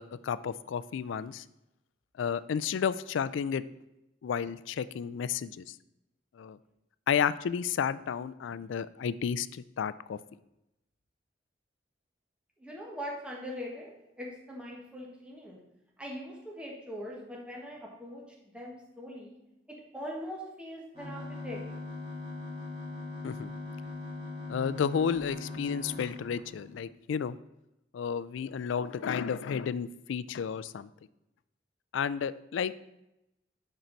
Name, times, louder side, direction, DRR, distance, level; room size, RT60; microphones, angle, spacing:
voice 1, 0.0-1.4 2.2-3.6 4.2-5.6 6.4-6.6 7.1-10.2 23.2-23.5 24.5-27.4 27.9-30.9 31.9-32.7, left 7 dB, 80° left, 16 dB, 0.3 m, -32 dB
voice 2, 12.6-15.6 16.0-19.4 19.9-21.6, equal, 5° right, -3 dB, 1.4 m, -41 dB
sound 1, 20.9-26.8, left 3 dB, 25° right, 2.9 m, -40 dB
10.5 x 4.5 x 4.0 m, 0.88 s
head